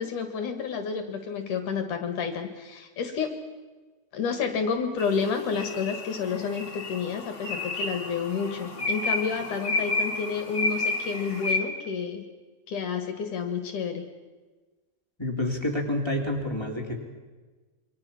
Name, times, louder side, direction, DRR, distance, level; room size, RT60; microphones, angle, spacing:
voice 1, 0.0-3.4 4.1-12.2 12.7-14.1, left 6 dB, 60° left, 6 dB, 3.0 m, -30 dB
sound 1, 5.0-11.6, left 2 dB, 35° left, 3.0 m, -31 dB
voice 2, 15.2-17.0, left 1 dB, 5° left, 1 dB, 2.9 m, -28 dB
27.5 x 25.0 x 5.8 m, 1.3 s
omnidirectional pair, 4.3 m